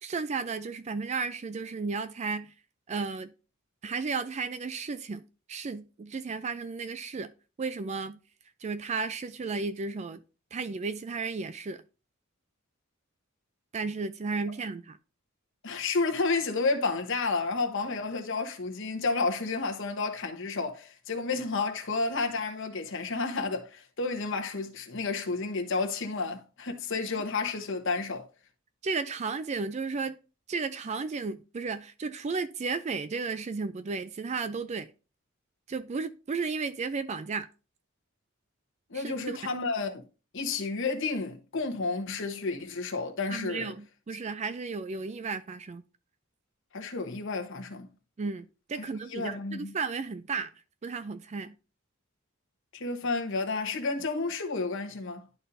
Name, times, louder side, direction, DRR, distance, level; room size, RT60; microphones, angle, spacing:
voice 1, 0.0-2.5 2.9-3.3 3.8-5.2 5.5-7.3 7.6-8.2 8.6-10.2 10.5-11.8 13.7-15.0 28.8-30.2 30.5-34.9 35.7-37.5 38.9-39.4 43.3-45.8 48.2-50.5 50.8-51.5, right 4 dB, 35° right, 0.4 m, -33 dB
voice 2, 15.6-28.3 38.9-40.0 40.3-43.7 46.7-47.9 49.1-49.7 52.7-55.3, left 3 dB, 65° left, 1.1 m, -31 dB
11.0 x 4.1 x 2.6 m
head